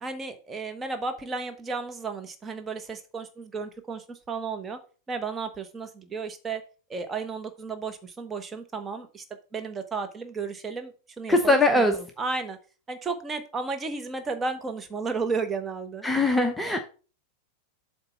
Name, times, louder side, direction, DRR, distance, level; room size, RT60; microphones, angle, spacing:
voice 1, 0.0-4.8 5.1-6.6 6.9-9.2 9.5-11.9 12.2-12.6 12.9-16.1, right 4 dB, 20° right, 6 dB, 1.1 m, -33 dB
voice 2, 11.3-11.9 16.0-16.8, left 2 dB, 5° left, 5 dB, 0.8 m, -21 dB
7.9 x 3.4 x 5.5 m, 0.36 s
figure-of-eight pair, 90°, 0 cm